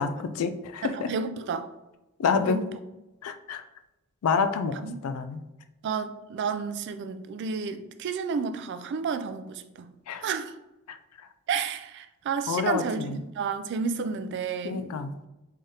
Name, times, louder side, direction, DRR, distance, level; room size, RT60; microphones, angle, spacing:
voice 1, 0.0-1.1 2.2-2.6 3.2-3.6 4.2-5.4 10.1-10.3 10.9-11.0 12.5-13.2 14.6-15.2, left 5 dB, 90° left, 0.3 m, -28 dB
voice 2, 0.8-1.6 2.5-2.6 4.8-5.0 5.8-9.9 10.2-10.5 11.5-13.1 13.3-14.8, right 5 dB, 55° right, 0.3 m, -31 dB
3.7 x 3.3 x 2.7 m
head